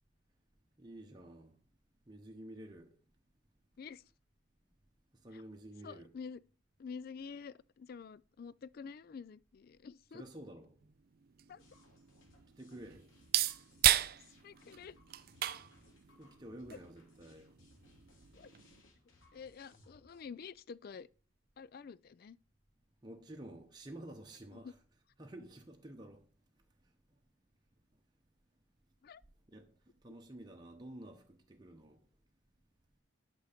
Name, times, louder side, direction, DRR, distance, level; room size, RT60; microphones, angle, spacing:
voice 1, 0.8-1.6 2.1-3.0 5.2-6.2 10.1-10.8 12.6-13.1 16.2-17.5 23.0-24.8 25.2-26.3 29.5-29.7 30.0-32.0, right 1 dB, 20° right, 1.0 m, -50 dB
voice 2, 5.8-6.4 6.8-10.2 11.5-11.6 14.4-15.0 16.7-16.8 18.4-18.5 19.3-21.1 21.6-22.4 24.6-24.7 29.0-29.2, left 5 dB, 50° left, 0.3 m, -48 dB
sound 1, 10.8-18.8, right 12 dB, 50° right, 0.4 m, -36 dB
sound 2, 11.6-20.2, left 2 dB, 80° left, 3.4 m, -65 dB
11.0 x 6.3 x 5.0 m
head